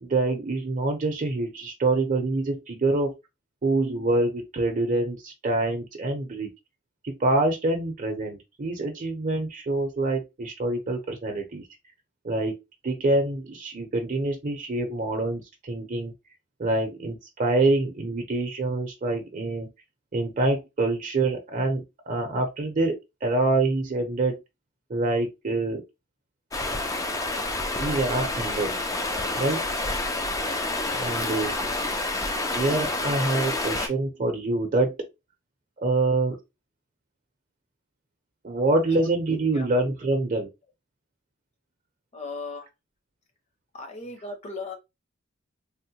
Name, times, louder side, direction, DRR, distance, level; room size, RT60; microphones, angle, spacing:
voice 1, 0.0-3.1 3.6-6.5 7.0-11.7 12.2-12.6 12.8-16.1 16.6-19.7 20.1-24.4 24.9-25.8 27.8-28.8 29.3-29.6 30.9-31.5 32.5-35.1 35.8-36.4 38.4-40.5, right 2 dB, 40° right, 0.6 m, -26 dB
Stream, 26.5-33.9, left 2 dB, 15° left, 0.4 m, -28 dB
voice 2, 42.1-42.7 43.7-44.7, left 3 dB, 30° left, 0.8 m, -37 dB
3.6 x 2.1 x 2.7 m
head